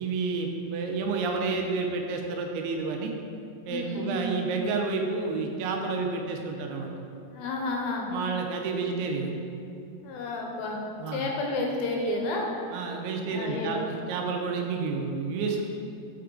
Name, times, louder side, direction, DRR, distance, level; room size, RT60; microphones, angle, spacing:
voice 1, 0.0-3.1 3.7-6.9 7.6-7.7 8.1-9.3 11.0-11.3 12.7-15.6, right 4 dB, 85° right, 2 dB, 2.6 m, -30 dB
voice 2, 3.7-4.3 7.3-8.1 10.0-12.5 13.3-13.8, left 2 dB, 80° left, 0 dB, 2.4 m, -31 dB
5.9 x 5.7 x 3.7 m, 2.6 s
omnidirectional pair, 4.4 m